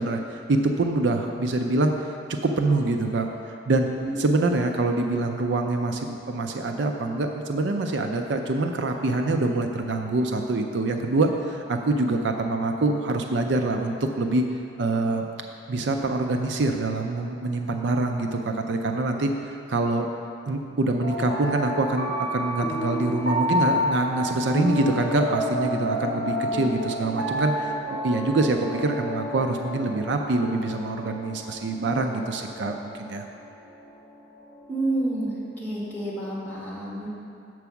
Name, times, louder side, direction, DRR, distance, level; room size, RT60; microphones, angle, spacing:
voice 1, 0.0-1.9 2.4-3.3 3.7-3.9 4.2-14.4 14.8-15.3 15.7-19.3 19.7-20.1 20.5-33.2, right 2 dB, 65° right, 4 dB, 0.5 m, -25 dB
sound 1, 21.0-35.3, equal, 35° left, 1.7 m, -30 dB
voice 2, 34.7-37.1, right 1 dB, 10° left, -6 dB, 1.8 m, -29 dB
7.0 x 4.7 x 7.0 m, 2.6 s
head